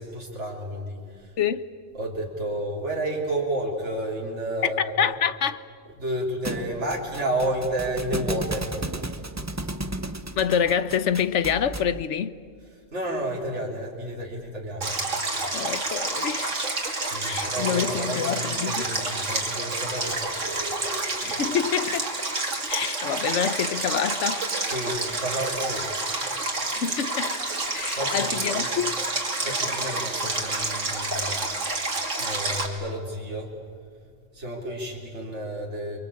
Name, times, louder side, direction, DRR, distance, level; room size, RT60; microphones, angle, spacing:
voice 1, 0.0-1.4 1.9-5.1 6.0-8.8 12.9-14.9 15.3-15.4 17.0-21.2 24.6-25.9 27.7-28.7 29.4-31.4 32.2-33.5 34.3-36.0, right 1 dB, 70° right, 3.8 m, -31 dB
voice 2, 4.8-5.6 10.4-12.4 15.5-16.7 17.2-18.8 21.2-22.3 22.7-24.5 26.7-27.4 27.7-29.0, left 8 dB, 75° left, 1.2 m, -27 dB
Thump thud, 6.4-12.0, right 2 dB, 15° right, 0.8 m, -34 dB
Stream, 14.8-32.7, right 2 dB, 90° right, 3.2 m, -29 dB
29.5 x 23.5 x 8.6 m
omnidirectional pair, 1.3 m